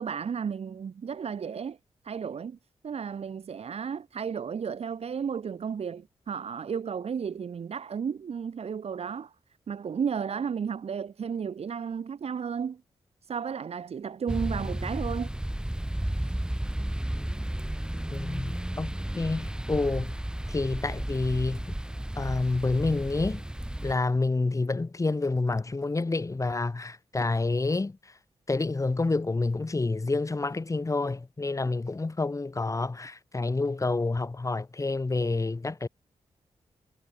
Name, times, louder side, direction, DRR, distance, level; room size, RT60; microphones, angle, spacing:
voice 1, 0.0-1.8 2.0-2.6 2.8-9.3 9.7-12.8 13.3-15.3, right 7 dB, 65° right, 1.1 m, -33 dB
sound 1, 14.3-24.0, right 1 dB, 5° right, 0.9 m, -33 dB
voice 2, 18.1-20.2 20.5-21.7 22.2-23.4 23.8-28.0 28.5-35.9, left 3 dB, 30° left, 1.1 m, -28 dB
supercardioid pair, 45°, 12 cm